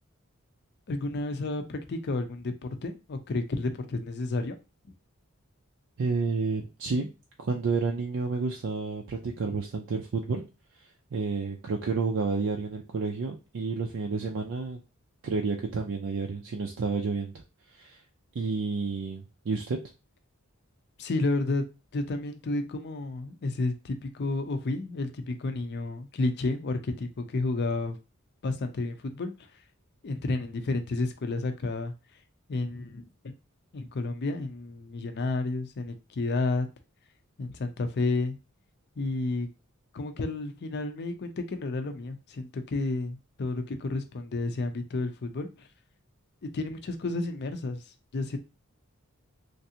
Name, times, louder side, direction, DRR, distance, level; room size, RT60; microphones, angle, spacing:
voice 1, 0.9-4.5 21.0-21.7 21.9-28.0 28.4-29.6 30.0-32.2 32.5-33.3 33.7-36.7 37.4-38.4 39.0-39.5 39.9-45.7 46.5-48.4, left 2 dB, 50° left, 8 dB, 0.5 m, -31 dB
voice 2, 6.0-7.1 7.4-10.4 11.1-14.8 15.2-17.3 17.7-18.0 18.3-19.8, right 4 dB, 60° right, 2 dB, 0.4 m, -30 dB
3.2 x 2.5 x 2.7 m, 0.28 s
head